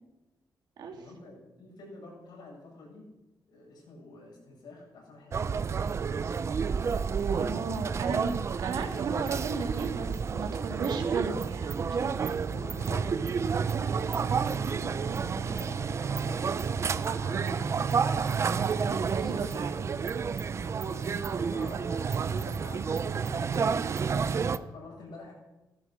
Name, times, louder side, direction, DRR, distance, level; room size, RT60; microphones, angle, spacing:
voice 1, 0.8-3.1 3.5-5.7 12.5-17.8 20.8-23.9 24.2-25.3, left 3 dB, 90° left, -2 dB, 7.5 m, -48 dB
sound 1, 5.3-24.6, right 6 dB, 40° right, 0.6 m, -30 dB
voice 2, 7.3-12.5 17.1-17.7 19.1-19.9, right 4 dB, 85° right, 3 dB, 2.9 m, -35 dB
17.0 x 13.5 x 6.3 m, 1.0 s
wide cardioid pair, 145°, 7 cm